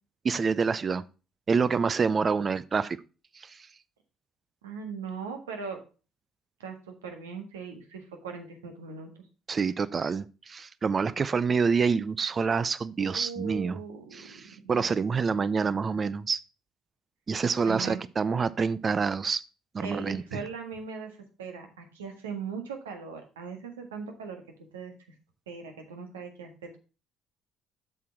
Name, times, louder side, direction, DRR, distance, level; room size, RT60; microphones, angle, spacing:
voice 1, 0.2-1.0 1.5-3.0 3.4-3.6 9.5-13.8 14.1-16.4 17.3-19.4 19.7-20.2, right 5 dB, 35° right, 0.5 m, -27 dB
voice 2, 4.6-5.8 6.6-9.1 13.0-14.5 17.6-18.0 19.8-24.4 24.7-24.9 25.5-26.8, right 5 dB, 85° right, 1.5 m, -39 dB
7.3 x 6.0 x 4.3 m
hypercardioid pair, 55°, 0 cm